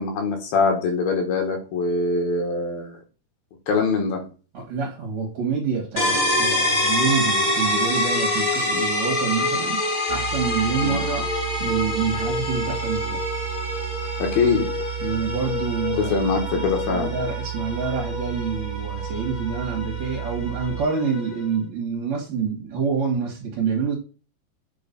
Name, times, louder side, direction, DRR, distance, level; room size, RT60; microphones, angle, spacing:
voice 1, 0.0-3.0 3.7-4.2 10.8-11.0 11.8-12.0 14.2-14.7 16.0-17.1, left 4 dB, 85° left, 2 dB, 3.4 m, -23 dB
voice 2, 4.5-9.8 10.1-11.3 11.6-13.2 15.0-16.3 16.5-23.9, right 5 dB, 55° right, -2 dB, 2.5 m, -27 dB
sound 1, 6.0-21.5, left 1 dB, 45° left, 0.5 m, -26 dB
sound 2, 10.1-20.8, right 19 dB, 60° left, 2.8 m, -33 dB
7.7 x 3.0 x 5.3 m, 0.35 s
omnidirectional pair, 4.1 m